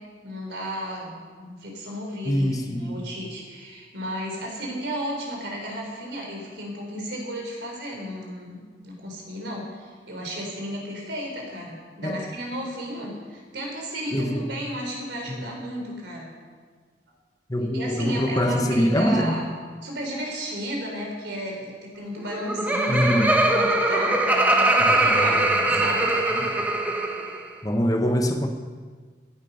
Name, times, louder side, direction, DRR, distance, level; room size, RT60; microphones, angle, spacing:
voice 1, 0.2-16.3 17.7-19.6 19.8-25.3 25.7-26.1, equal, 70° right, 0 dB, 4.0 m, -34 dB
voice 2, 2.2-3.0 12.0-12.3 14.1-14.5 15.3-15.5 17.5-19.4 22.9-23.4 24.8-25.4 25.8-25.9 26.3-26.6 27.6-28.5, equal, 20° left, 4 dB, 1.0 m, -24 dB
Laughter, 22.2-27.4, right 2 dB, 10° right, 1.2 m, -21 dB
17.5 x 9.0 x 5.6 m, 1.5 s
head